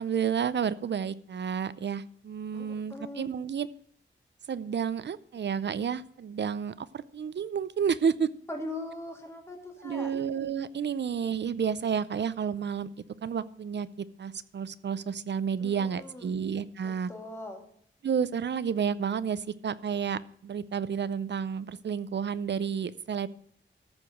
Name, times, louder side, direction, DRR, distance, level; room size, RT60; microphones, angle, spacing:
voice 1, 0.0-3.7 4.5-8.3 9.8-12.9 13.2-17.1 18.0-23.3, right 7 dB, 60° right, 16 dB, 0.5 m, -31 dB
voice 2, 2.5-3.4 8.5-10.1 15.6-16.4 16.8-17.6, left 1 dB, 10° left, 2 dB, 2.2 m, -41 dB
14.0 x 4.8 x 7.7 m, 0.65 s
wide cardioid pair, 180°, 21 cm